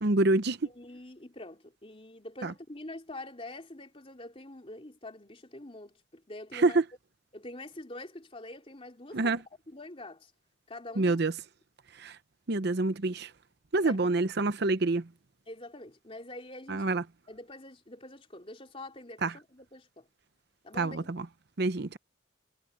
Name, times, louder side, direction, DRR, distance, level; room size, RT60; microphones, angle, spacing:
voice 1, 0.0-0.6 2.4-2.5 6.5-6.8 9.1-9.4 11.0-11.3 12.0-12.2 12.5-13.3 13.7-15.1 16.7-17.0 19.2-19.3 20.8-21.2 21.6-22.0, right 2 dB, 55° right, 0.8 m, -27 dB
voice 2, 0.6-6.8 7.3-9.4 9.7-10.3 10.7-11.2 13.8-14.0 15.5-20.1 20.6-21.1, left 2 dB, 30° left, 3.5 m, -45 dB
head